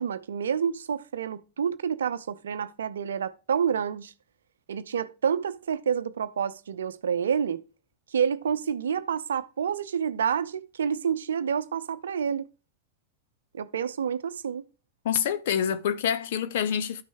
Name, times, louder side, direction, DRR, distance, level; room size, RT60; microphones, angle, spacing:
voice 1, 0.0-4.1 4.7-7.6 8.1-12.5 13.5-14.6, right 7 dB, 65° right, 0.7 m, -28 dB
voice 2, 15.0-17.0, left 8 dB, 55° left, 1.0 m, -26 dB
12.5 x 6.1 x 3.4 m
figure-of-eight pair, 90°, 0 cm